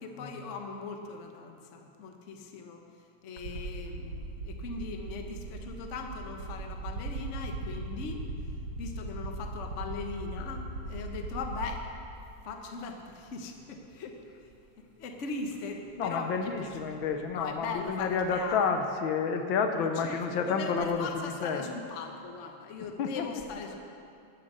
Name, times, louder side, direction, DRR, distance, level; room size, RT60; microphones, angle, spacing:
voice 1, 0.0-2.8 3.2-8.2 8.8-11.9 12.4-14.5 14.8-17.0 17.3-18.6 20.0-23.8, left 4 dB, 50° left, 4 dB, 1.0 m, -39 dB
sound 1, 3.4-12.1 13.3-13.4 15.5-15.6 15.8-18.4, right 2 dB, 75° right, 2.2 m, -39 dB
voice 2, 16.0-21.7 23.0-23.3 23.7-23.8, left 5 dB, 75° left, 6 dB, 1.4 m, -30 dB
14.0 x 7.2 x 6.6 m, 2.7 s
omnidirectional pair, 2.3 m